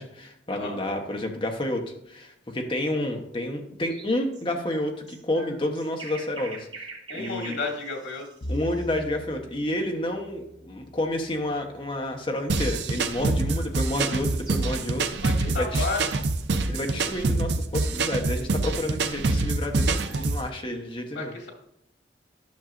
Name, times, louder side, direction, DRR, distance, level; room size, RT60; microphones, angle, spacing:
voice 1, 0.0-6.7 7.1-7.6 8.5-15.2 15.5-15.9 16.7-21.3, left 1 dB, 30° left, 3 dB, 1.0 m, -30 dB
sound 1, 3.9-9.0 12.4-14.8, right 4 dB, 25° right, 1.2 m, -44 dB
voice 2, 7.1-8.3 15.2-16.0 21.1-21.5, left 3 dB, 85° left, 1 dB, 2.2 m, -32 dB
Bowed string instrument, 8.4-12.8, equal, 50° left, 0.6 m, -41 dB
sound 2, 12.5-20.5, right 3 dB, 65° right, 0.6 m, -25 dB
10.5 x 6.2 x 2.5 m, 0.79 s
head